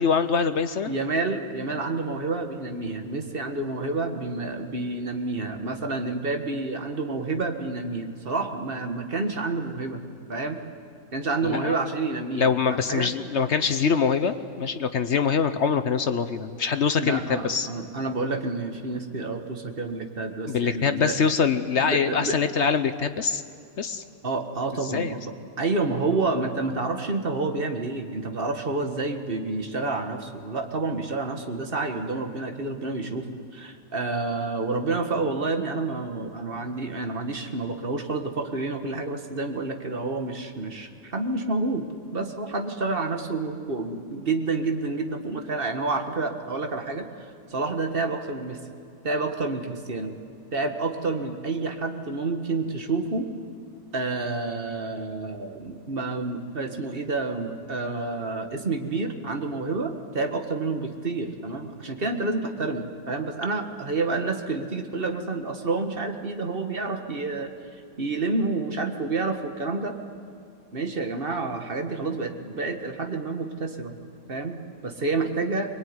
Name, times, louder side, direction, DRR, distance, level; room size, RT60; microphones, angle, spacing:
voice 1, 0.0-0.9 11.4-11.8 12.4-17.7 20.5-23.4 23.8-24.0 24.9-25.2, left 6 dB, 55° left, 11 dB, 0.8 m, -24 dB
voice 2, 0.8-10.0 10.3-10.6 11.1-13.1 17.0-21.3 21.8-22.4 24.2-25.2 25.6-41.9 42.1-47.1 47.5-48.6 49.0-50.1 50.5-53.3 53.9-67.5 68.0-69.9 70.7-73.9 74.3-75.7, right 3 dB, 30° right, 5 dB, 1.7 m, -29 dB
23.0 x 21.5 x 9.7 m, 2.4 s
omnidirectional pair, 1.9 m